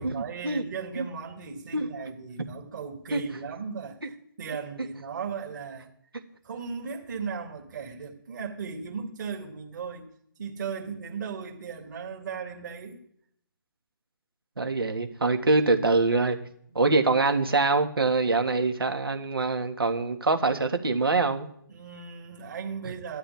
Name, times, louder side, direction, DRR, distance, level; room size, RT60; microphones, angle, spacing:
voice 1, 0.0-5.9 6.4-10.1 10.4-13.0 16.7-16.8 21.7-23.2, right 6 dB, 55° right, 3.0 m, -37 dB
voice 2, 14.6-16.4 16.8-21.5 22.8-22.9, right 3 dB, 90° right, 1.9 m, -24 dB
16.5 x 12.5 x 3.5 m
figure-of-eight pair, 145°, 12 cm